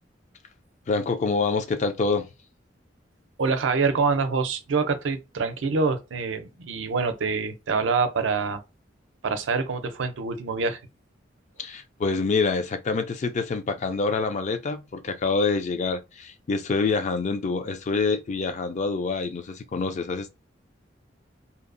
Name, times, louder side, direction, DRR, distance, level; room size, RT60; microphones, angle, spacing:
voice 1, 0.9-2.3 11.6-20.3, left 4 dB, 40° left, 0.4 m, -26 dB
voice 2, 3.4-8.6 9.2-10.8, right 4 dB, 90° right, 0.5 m, -25 dB
2.7 x 2.0 x 2.5 m
head